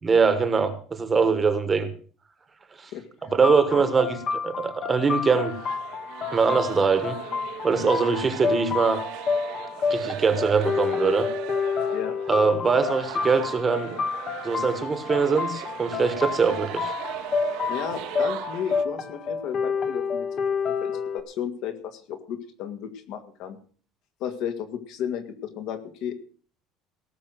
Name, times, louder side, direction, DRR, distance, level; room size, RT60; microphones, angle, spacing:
voice 1, 0.0-1.9 2.8-2.9 3.2-4.2 4.4-5.5 6.3-7.2 7.6-9.0 9.9-11.3 12.3-14.0 14.4-16.9, right 5 dB, 15° right, 10 dB, 1.4 m, -22 dB
voice 2, 2.9-3.3 3.7-3.8 11.9-12.2 17.7-20.3 20.7-23.6 24.2-26.1, left 9 dB, 55° left, 8 dB, 2.1 m, -34 dB
sound 1, 3.4-21.2, left 5 dB, 25° left, 1.3 m, -29 dB
sound 2, 5.1-18.8, right 15 dB, 60° right, 1.2 m, -38 dB
18.0 x 6.7 x 7.8 m, 0.43 s
cardioid pair, 175°, 0 cm